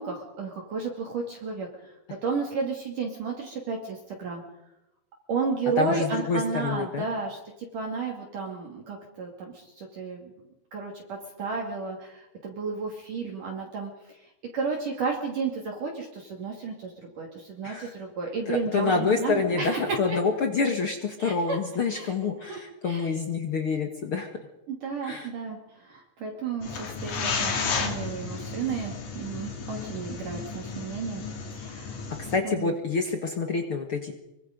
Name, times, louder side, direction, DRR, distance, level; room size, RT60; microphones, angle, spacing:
voice 1, 0.0-1.7 2.2-4.4 5.3-7.4 7.7-10.3 10.7-14.2 14.5-20.2 21.2-21.6 21.9-22.1 22.5-23.1 24.7-31.2 31.5-32.0 32.4-32.7, right 4 dB, 50° right, 0 dB, 3.8 m, -32 dB
voice 2, 5.8-7.0 17.6-17.9 18.4-24.4 25.0-25.3 32.3-34.1, left 4 dB, 65° left, 5 dB, 1.3 m, -27 dB
sound 1, 26.6-32.4, left 5 dB, 50° left, 3.3 m, -33 dB
25.0 x 24.5 x 5.3 m, 0.91 s
omnidirectional pair, 5.1 m